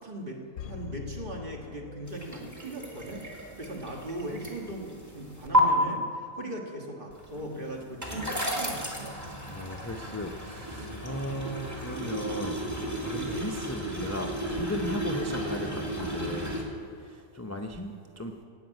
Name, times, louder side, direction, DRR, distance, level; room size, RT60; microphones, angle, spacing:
voice 1, 0.0-9.2, right 1 dB, 40° right, 0 dB, 1.8 m, -39 dB
sound 1, 0.6-2.7 3.1-3.2, left 11 dB, 75° left, 0.9 m, -42 dB
sound 2, 2.1-5.6 7.1-16.6, right 1 dB, 10° right, 2.1 m, -33 dB
voice 2, 9.5-12.6 13.0-16.5 16.9-18.3, left 1 dB, 20° left, 3 dB, 0.4 m, -36 dB
17.5 x 5.9 x 9.0 m, 2.3 s
omnidirectional pair, 1.5 m